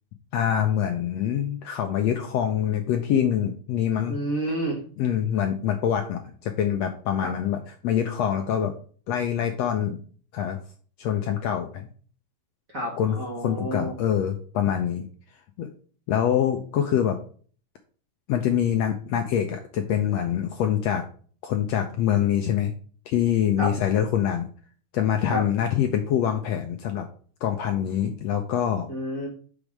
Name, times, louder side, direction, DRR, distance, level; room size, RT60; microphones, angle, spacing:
voice 1, 0.3-4.2 5.0-8.7 9.1-10.0 10.3-10.6 11.0-11.8 13.0-13.2 13.4-15.1 15.6-15.7 16.1-17.2 18.3-21.0 21.4-22.7 23.1-24.5 24.9-27.1 27.4-28.9, left 9 dB, 70° left, 5 dB, 1.6 m, -25 dB
voice 2, 4.1-4.8 7.2-7.3 12.7-13.9 23.6-23.7 25.3-25.5 28.9-29.3, equal, 35° right, -2 dB, 1.7 m, -29 dB
6.2 x 5.1 x 6.3 m, 0.44 s
omnidirectional pair, 3.6 m